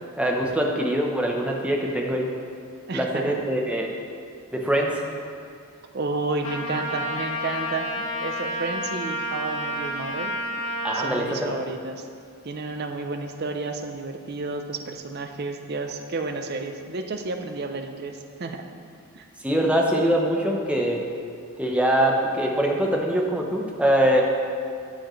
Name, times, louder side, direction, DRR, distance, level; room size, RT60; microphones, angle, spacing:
voice 1, 0.2-2.3 2.9-3.9 4.5-5.0 10.8-11.5 19.4-21.0 21.6-24.2, right 1 dB, 5° right, 0 dB, 0.7 m, -23 dB
voice 2, 2.9-3.4 5.9-10.3 10.9-12.1 12.4-18.6 19.1-19.3, right 3 dB, 45° right, 5 dB, 0.6 m, -31 dB
Trumpet, 6.4-11.1, equal, 70° left, 1.8 m, -30 dB
12.0 x 7.2 x 3.1 m, 2.3 s
head